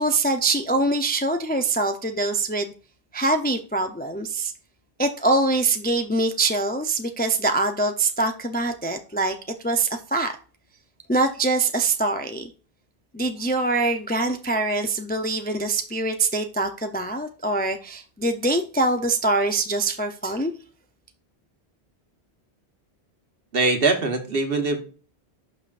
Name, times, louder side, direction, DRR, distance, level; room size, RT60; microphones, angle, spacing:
voice 1, 0.0-2.7 3.1-4.5 5.0-9.4 9.6-10.3 11.1-12.5 13.1-20.5, right 2 dB, 15° left, 6 dB, 0.4 m, -24 dB
voice 2, 23.5-24.8, right 3 dB, 60° right, 5 dB, 1.4 m, -22 dB
11.5 x 5.6 x 2.5 m, 0.38 s
omnidirectional pair, 1.1 m